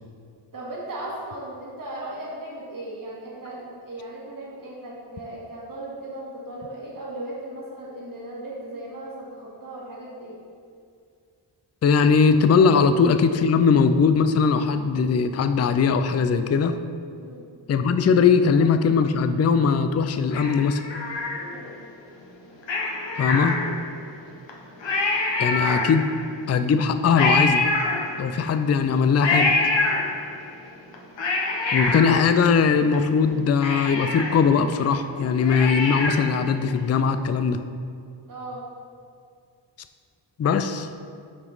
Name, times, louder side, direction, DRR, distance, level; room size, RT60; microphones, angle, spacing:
voice 1, 0.5-10.4 17.2-17.5 21.3-21.7 38.3-38.6, right 1 dB, 45° right, -6 dB, 1.6 m, -37 dB
voice 2, 11.8-16.8 17.7-20.8 23.2-23.6 25.4-26.1 26.5-27.6 28.2-29.5 31.7-37.6 40.4-40.9, left 5 dB, 35° left, 10 dB, 0.4 m, -20 dB
Cat, 20.3-21.8 22.6-24.0 24.5-24.6 24.8-26.3 27.1-28.5 29.2-30.5 30.9-32.9 33.3-33.4 33.6-36.4 36.8-36.9, left 3 dB, 65° left, 1.1 m, -25 dB
6.1 x 5.0 x 4.0 m, 2.3 s
cardioid pair, 50°, 47 cm